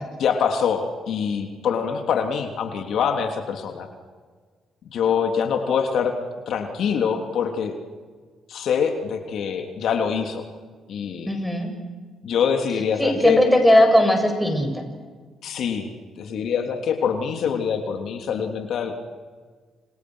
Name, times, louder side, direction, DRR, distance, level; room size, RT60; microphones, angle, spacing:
voice 1, 0.2-3.9 4.8-6.1 6.5-7.8 8.5-10.4 10.9-11.3 12.2-13.4 15.4-15.9 16.2-18.9, left 7 dB, 70° left, 4 dB, 3.2 m, -24 dB
voice 2, 11.3-11.7 13.0-14.7, equal, 5° left, 4 dB, 7.3 m, -18 dB
29.5 x 29.0 x 6.4 m, 1.5 s
cardioid pair, 90°, 0 cm